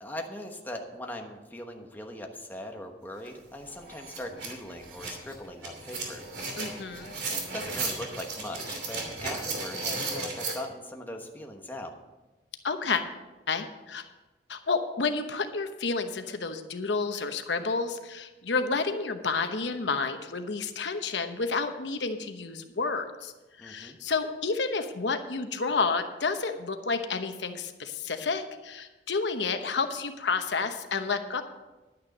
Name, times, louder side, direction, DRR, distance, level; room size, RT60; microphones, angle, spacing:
voice 1, 0.0-6.2 7.3-12.0 23.6-24.0, left 1 dB, 10° left, 2 dB, 1.1 m, -40 dB
sound 1, 3.2-3.3 3.7-10.5, right 3 dB, 75° right, 2.8 m, -35 dB
voice 2, 6.6-7.1 12.6-13.0 13.5-14.0 14.5-23.3 23.6-31.4, left 4 dB, 85° left, 7 dB, 1.0 m, -30 dB
11.0 x 9.5 x 5.3 m, 1.1 s
head